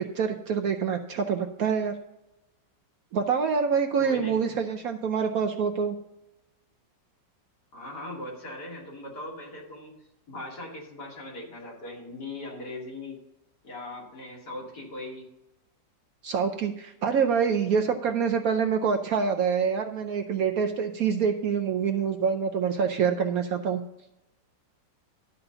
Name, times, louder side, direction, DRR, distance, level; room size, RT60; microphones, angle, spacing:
voice 1, 0.1-1.9 3.1-5.9 16.2-23.8, right 6 dB, 65° right, 5 dB, 1.0 m, -26 dB
voice 2, 4.0-4.4 7.7-9.9 10.3-13.2 13.6-15.3, left 2 dB, 60° left, -3 dB, 3.0 m, -39 dB
12.0 x 4.1 x 6.8 m, 0.89 s
omnidirectional pair, 2.0 m